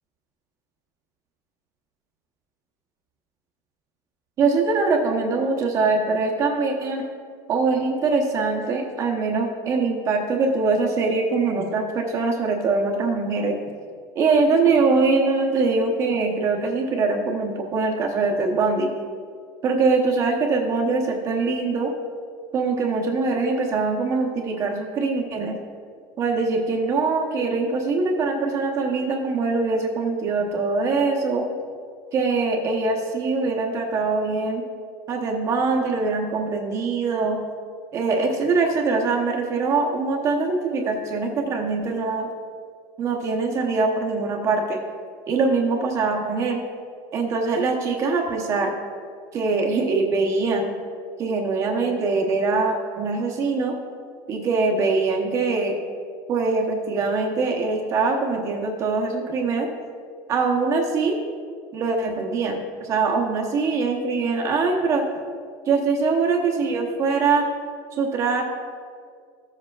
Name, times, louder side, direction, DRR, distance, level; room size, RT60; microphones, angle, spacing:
voice 1, 4.4-7.1 7.5-13.6 14.1-18.9 19.6-21.9 22.5-25.6 26.2-31.5 32.1-34.6 35.1-37.4 37.9-42.3 43.0-44.8 45.3-46.6 47.1-48.7 49.3-50.7 51.2-53.7 54.3-55.8 56.3-59.7 60.3-61.2 61.7-65.0 65.7-67.4 68.0-68.4, right 4 dB, 30° right, 1 dB, 0.9 m, -23 dB
14.5 x 7.6 x 2.4 m, 2.1 s
cardioid pair, 170°, 10 cm